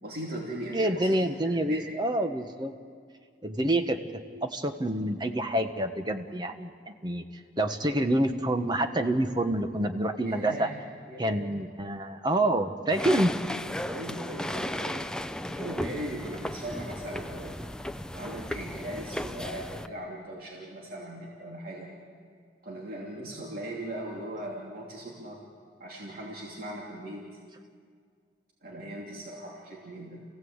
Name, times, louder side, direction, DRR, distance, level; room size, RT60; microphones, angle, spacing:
voice 1, 0.0-1.9 10.2-10.8 11.1-11.5 13.9-15.1 15.5-17.6 18.1-21.9 22.6-25.4 25.8-27.3 28.6-30.2, right 1 dB, 55° right, -3 dB, 2.8 m, -39 dB
voice 2, 0.7-2.7 3.4-4.0 4.4-7.2 7.6-10.7 11.2-13.3, right 1 dB, 25° right, 6 dB, 1.3 m, -27 dB
sound 1, 12.9-19.9, left 1 dB, 5° left, 0.5 m, -35 dB
29.0 x 16.0 x 8.1 m, 2.1 s
head